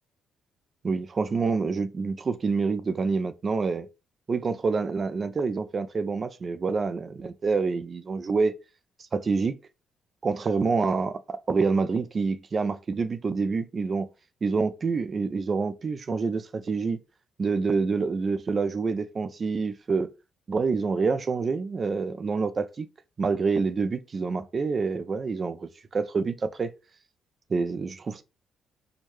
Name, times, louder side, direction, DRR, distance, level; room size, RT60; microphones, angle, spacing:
voice 1, 0.8-3.9 4.3-8.5 9.1-9.6 10.2-14.1 14.4-17.0 17.4-20.1 20.5-22.9 23.2-26.7 27.5-28.2, right 4 dB, 40° right, 0.4 m, -27 dB
4.5 x 2.2 x 3.0 m
cardioid pair, 90°, 0 cm